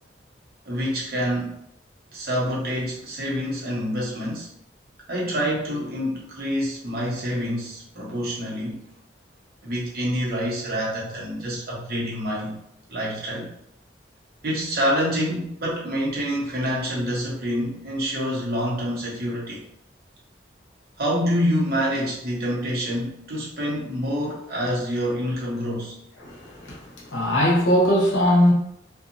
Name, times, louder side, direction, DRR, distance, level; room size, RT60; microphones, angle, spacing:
voice 1, 0.7-1.5 2.1-4.5 5.1-8.8 9.6-12.6 12.9-13.5 14.4-19.6 21.0-25.9, equal, 55° right, -4 dB, 0.8 m, -27 dB
voice 2, 26.2-28.5, equal, 85° left, -3 dB, 0.9 m, -20 dB
2.7 x 2.3 x 2.5 m, 0.76 s
head